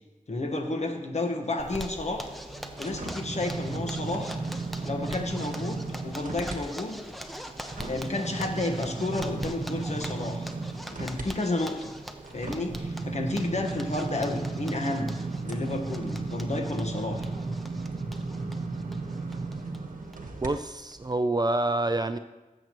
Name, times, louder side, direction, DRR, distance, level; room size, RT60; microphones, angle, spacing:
voice 1, 0.3-2.3 2.8-4.4 4.8-7.0 7.8-10.5 10.9-11.9 12.3-15.1 15.4-17.3, left 2 dB, 55° left, 3 dB, 1.3 m, -31 dB
Zipper (clothing), 1.6-19.8 20.1-20.2 20.5-20.6 20.9-21.4, equal, ahead, 0.8 m, -43 dB
sound 1, 2.0-6.6 7.0-20.5 21.0-21.1, right 3 dB, 85° right, 1.2 m, -35 dB
voice 2, 20.4-22.2, right 2 dB, 30° right, 9 dB, 0.4 m, -27 dB
19.0 x 8.0 x 3.1 m, 1.1 s
wide cardioid pair, 80°, 13 cm